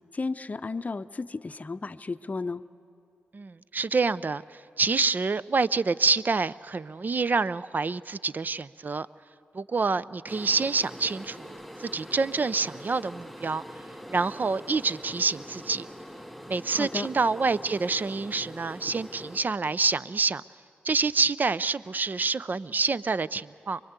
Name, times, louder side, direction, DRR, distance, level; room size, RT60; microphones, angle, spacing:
voice 1, 0.1-2.6 16.7-17.1, left 3 dB, 35° left, 12 dB, 0.7 m, -33 dB
voice 2, 3.3-9.1 9.5-13.6 14.1-15.9 16.5-20.4 20.8-23.8, right 4 dB, 40° right, 17 dB, 0.5 m, -27 dB
sound 1, 10.3-19.4, equal, 5° right, 3.0 m, -43 dB
24.0 x 21.0 x 8.1 m, 2.5 s
supercardioid pair, 45°, 4 cm